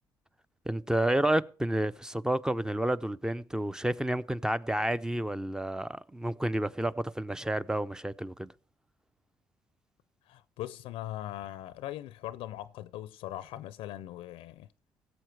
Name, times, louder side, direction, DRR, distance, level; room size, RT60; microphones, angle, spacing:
voice 1, 0.7-8.5, right 1 dB, 5° right, 0.5 m, -30 dB
voice 2, 10.3-14.7, left 14 dB, 75° left, 0.5 m, -40 dB
16.5 x 7.3 x 4.6 m
supercardioid pair, 60°, 9 cm